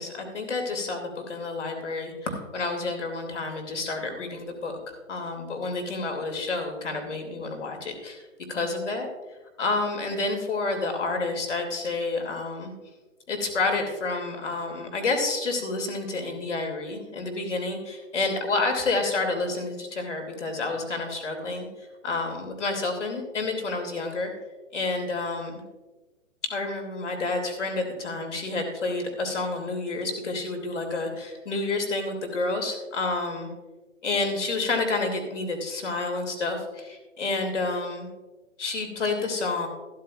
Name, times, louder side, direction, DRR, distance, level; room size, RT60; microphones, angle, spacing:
voice 1, 0.0-9.1 9.6-12.7 13.3-24.3 24.7-25.5 26.4-33.5 34.0-38.1 38.6-39.7, left 3 dB, 60° left, 3 dB, 3.0 m, -29 dB
14.5 x 13.0 x 2.5 m, 1.2 s
figure-of-eight pair, 130°, 40 cm